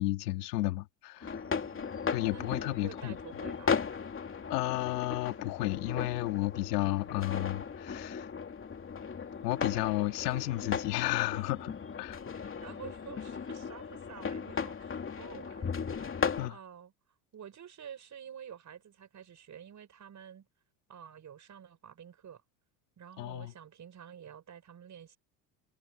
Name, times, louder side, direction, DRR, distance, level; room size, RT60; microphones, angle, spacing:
voice 1, 0.0-1.4 2.1-3.2 4.5-8.3 9.4-11.7 12.0-12.2 16.4-16.6 23.2-23.5, left 18 dB, 85° left, 2.4 m, -32 dB
sound 1, 1.2-16.5, left 6 dB, 25° left, 3.0 m, -36 dB
voice 2, 1.2-4.1 12.3-16.9 17.3-20.5 20.9-22.4 23.0-25.2, right 8 dB, 40° right, 6.9 m, -50 dB
supercardioid pair, 95°, 46 cm